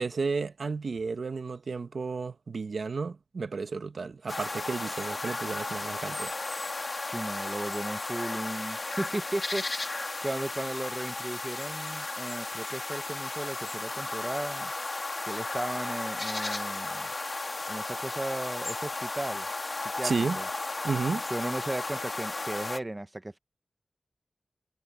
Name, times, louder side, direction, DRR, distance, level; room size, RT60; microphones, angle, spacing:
voice 1, 0.0-6.3 20.0-20.4 20.8-21.2, right 4 dB, 85° right, 1.2 m, -32 dB
sound 1, 4.3-22.8, left 2 dB, 45° left, 2.4 m, -34 dB
voice 2, 7.0-14.7 15.2-17.1 17.7-19.5 19.8-20.5 21.3-23.4, right 1 dB, 25° right, 0.9 m, -36 dB
wide cardioid pair, 90°, 0 cm